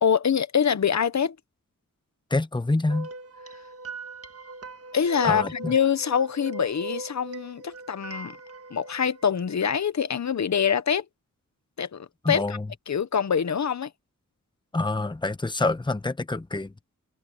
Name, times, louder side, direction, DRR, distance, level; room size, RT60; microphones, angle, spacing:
voice 1, 0.0-1.4 4.9-8.4 8.7-11.0 11.8-12.6 12.9-13.9, left 7 dB, 55° left, 0.9 m, -25 dB
voice 2, 2.3-3.1 5.2-5.7 12.2-12.7 14.7-16.7, left 2 dB, 15° left, 0.9 m, -26 dB
sound 1, 2.9-9.9, right 2 dB, 45° right, 1.6 m, -39 dB
wide cardioid pair, 145°, 33 cm